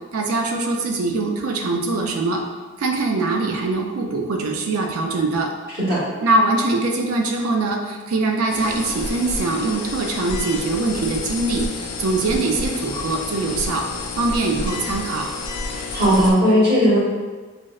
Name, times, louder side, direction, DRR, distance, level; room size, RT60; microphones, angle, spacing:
voice 1, 0.1-2.4 2.8-5.5 6.2-13.8 14.2-15.3, right 3 dB, 80° right, 2 dB, 0.4 m, -22 dB
sound 1, 8.5-16.3, left 3 dB, 85° left, 0.4 m, -30 dB
voice 2, 15.7-17.0, equal, 45° right, -10 dB, 1.2 m, -17 dB
4.0 x 2.1 x 2.3 m, 1.3 s
head